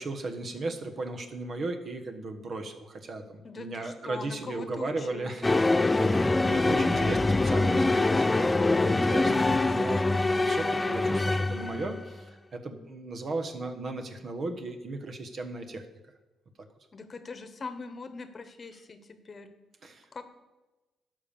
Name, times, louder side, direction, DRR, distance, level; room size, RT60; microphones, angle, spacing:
voice 1, 0.0-5.5 5.8-15.8 19.8-20.2, right 2 dB, 50° right, 5 dB, 1.3 m, -36 dB
voice 2, 3.4-5.5 16.9-19.5 20.1-20.2, left 4 dB, 35° left, 9 dB, 1.1 m, -42 dB
sound 1, 5.4-12.0, left 2 dB, 20° left, 0.4 m, -24 dB
12.5 x 5.7 x 7.0 m, 1.1 s
cardioid pair, 90°, 0 cm